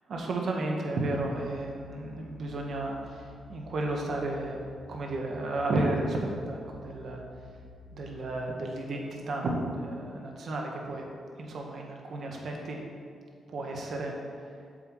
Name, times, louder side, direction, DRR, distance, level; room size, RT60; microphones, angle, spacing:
voice 1, 0.1-4.6 4.9-7.2 8.0-11.0 11.4-12.8 13.5-14.5, right 2 dB, 60° right, 0 dB, 1.3 m, -33 dB
sound 1, 1.3-8.4, left 3 dB, 40° left, 1.8 m, -51 dB
8.0 x 7.8 x 3.2 m, 2.2 s
cardioid pair, 90°, 0 cm